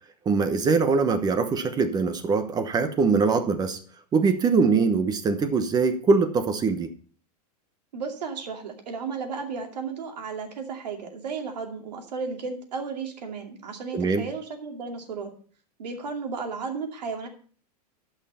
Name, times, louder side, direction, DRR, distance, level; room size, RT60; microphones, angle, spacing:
voice 1, 0.3-3.8 4.1-6.9 13.9-14.2, right 4 dB, 20° right, 10 dB, 0.9 m, -22 dB
voice 2, 7.9-15.3 15.8-17.3, right 5 dB, 90° right, 3 dB, 2.5 m, -34 dB
13.0 x 5.8 x 5.5 m, 0.43 s
supercardioid pair, 140°, 21 cm